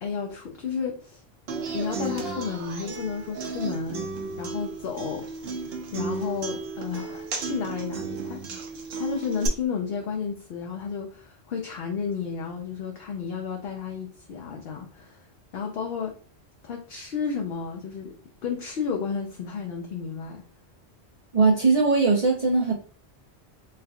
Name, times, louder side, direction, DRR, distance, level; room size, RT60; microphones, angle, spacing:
voice 1, 0.0-1.2 1.7-4.1 4.4-5.6 5.9-8.4 9.0-15.3 15.5-16.2 16.6-18.1 18.4-20.4, left 6 dB, 65° left, 1 dB, 0.8 m, -32 dB
Human voice / Acoustic guitar, 1.5-9.5, right 4 dB, 65° right, 0.9 m, -34 dB
voice 2, 21.3-22.7, right 4 dB, 40° right, -3 dB, 0.6 m, -20 dB
3.7 x 3.4 x 2.3 m, 0.41 s
omnidirectional pair, 1.1 m